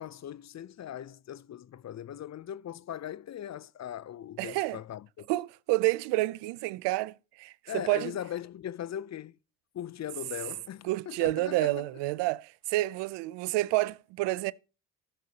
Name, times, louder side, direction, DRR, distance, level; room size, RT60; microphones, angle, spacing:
voice 1, 0.0-5.3 7.7-9.4 9.7-11.9, left 10 dB, 40° left, 0.6 m, -39 dB
voice 2, 4.4-4.8 5.3-8.1 10.8-14.5, right 19 dB, 85° right, 0.6 m, -29 dB
15.5 x 6.8 x 2.8 m
supercardioid pair, 75°, 41 cm